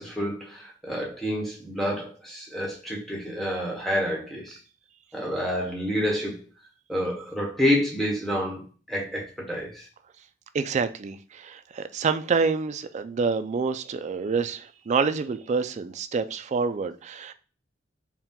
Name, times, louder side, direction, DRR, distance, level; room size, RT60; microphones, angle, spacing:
voice 1, 0.0-4.6 5.1-6.4 6.9-9.9, equal, ahead, 1.1 m, -28 dB
voice 2, 10.5-17.3, right 5 dB, 35° right, 0.3 m, -27 dB
4.3 x 2.2 x 3.6 m
head